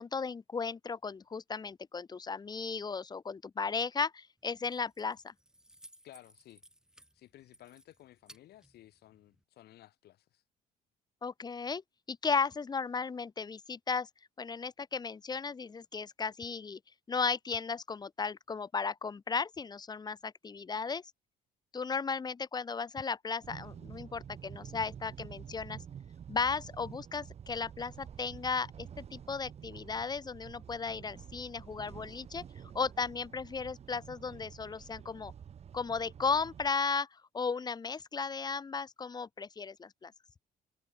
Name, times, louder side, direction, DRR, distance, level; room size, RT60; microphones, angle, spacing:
voice 1, 0.0-5.3 11.2-11.8 12.1-14.1 14.4-16.8 17.1-21.0 21.7-25.8 26.3-32.4 32.7-35.3 35.7-37.1 37.3-40.1, left 5 dB, 25° left, 1.0 m, -35 dB
Keys jangling, 4.4-9.4, right 1 dB, 5° right, 2.0 m, -61 dB
voice 2, 6.0-6.6 7.1-10.4, left 14 dB, 70° left, 5.6 m, -56 dB
sound 1, 23.4-36.7, right 8 dB, 40° right, 0.9 m, -49 dB
open air
cardioid pair, 110°, 17 cm